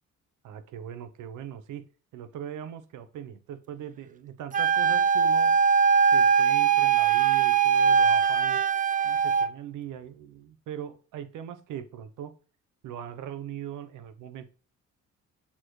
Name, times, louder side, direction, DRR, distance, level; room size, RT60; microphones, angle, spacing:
voice 1, 0.4-1.8 2.1-5.5 6.1-8.6 9.0-12.3 12.8-14.5, right 9 dB, 80° right, 11 dB, 0.9 m, -40 dB
Wind instrument woodwind instrument, 4.5-9.5, right 7 dB, 30° right, 0.4 m, -21 dB
7.1 x 4.5 x 3.2 m, 0.37 s
cardioid pair, 90°, 30 cm